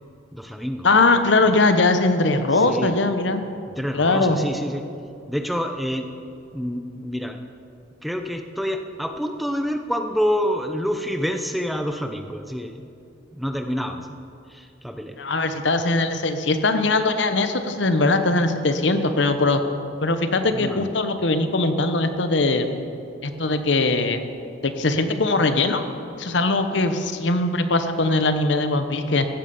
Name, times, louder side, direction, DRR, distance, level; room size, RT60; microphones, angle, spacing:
voice 1, 0.3-0.9 2.5-2.9 3.7-4.8 5.3-6.1 6.5-7.4 8.0-12.9 13.3-14.1 14.5-15.2 20.5-20.9, equal, ahead, 5 dB, 0.6 m, -27 dB
voice 2, 0.8-3.4 3.9-4.4 15.2-19.6 20.0-22.7 23.2-24.2 24.6-25.8 26.2-29.3, left 2 dB, 65° left, 8 dB, 1.0 m, -20 dB
15.0 x 8.8 x 7.1 m, 2.5 s
head